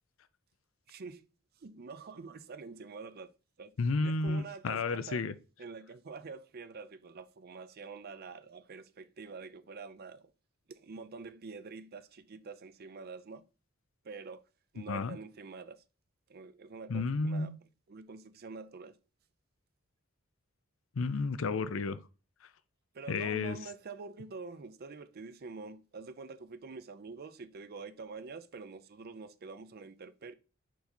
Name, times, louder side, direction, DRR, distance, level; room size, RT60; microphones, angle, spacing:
voice 1, 0.9-1.3 1.6-3.3 3.6-3.7 4.0-5.3 5.6-10.3 10.7-13.4 14.0-14.4 14.7-15.8 16.3-17.5 17.9-19.0 22.9-30.3, right 4 dB, 50° right, 0.5 m, -46 dB
voice 2, 3.8-5.3 14.9-15.2 16.9-17.6 21.0-22.0 23.1-23.6, left 3 dB, 70° left, 0.5 m, -32 dB
5.2 x 4.7 x 4.3 m
head